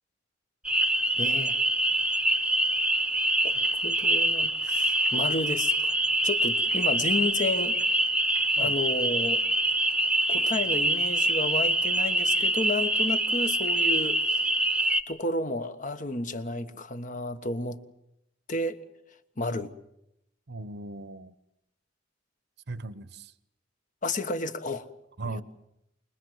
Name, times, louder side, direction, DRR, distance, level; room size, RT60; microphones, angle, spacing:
sound 1, 0.6-15.0, right 1 dB, 5° right, 0.9 m, -25 dB
voice 1, 1.2-1.6 3.4-5.9 6.2-7.8 8.6-9.4 10.3-14.4 15.1-17.8 18.5-18.8 19.4-19.7 24.0-24.9 25.3-25.4, left 2 dB, 40° left, 1.3 m, -31 dB
voice 2, 20.5-21.3 22.7-23.3 25.2-25.4, right 2 dB, 60° right, 0.9 m, -37 dB
26.0 x 21.0 x 7.9 m
head